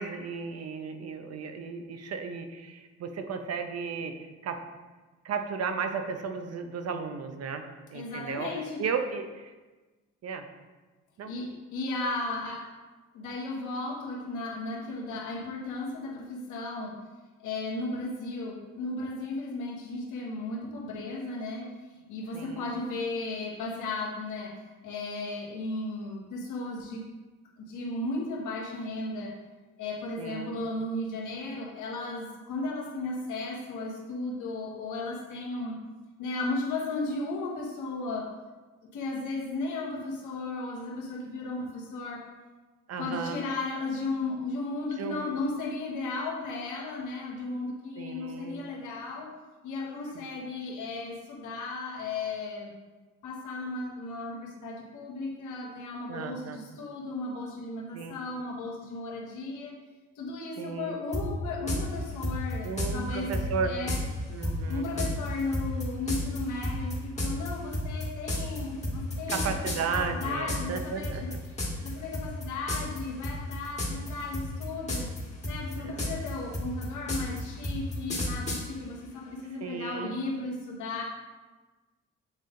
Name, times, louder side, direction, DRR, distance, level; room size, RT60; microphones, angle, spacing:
voice 1, 0.0-4.6 5.2-7.6 7.9-8.5 8.8-9.5 10.2-10.4 11.2-11.3 22.3-22.7 30.2-30.6 42.9-43.4 45.0-45.4 48.0-48.6 50.1-50.3 56.1-56.6 57.9-58.2 60.6-61.0 62.6-63.7 64.3-64.9 69.3-71.4 75.8-76.1 79.6-80.1, right 5 dB, 55° right, 7 dB, 0.7 m, -34 dB
voice 2, 7.9-8.8 11.2-12.7 13.1-17.0 17.4-27.0 27.7-29.4 29.8-35.8 36.2-38.3 38.9-42.3 43.0-49.3 49.6-52.7 53.2-59.8 60.2-63.4 63.6-64.0 64.4-69.6 69.9-71.3 71.8-75.1 75.4-81.0, left 2 dB, 85° left, -1 dB, 1.3 m, -35 dB
sound 1, 61.1-61.2 61.7-61.8 62.2-62.9 63.3-63.5 63.9-64.0 64.4-70.8 71.0-71.9 72.1-72.4 72.7-73.0 73.2-74.1 74.3-75.2 75.4-78.6, left 1 dB, 20° left, 1.7 m, -31 dB
8.0 x 3.5 x 3.8 m, 1.3 s
cardioid pair, 90°, 30 cm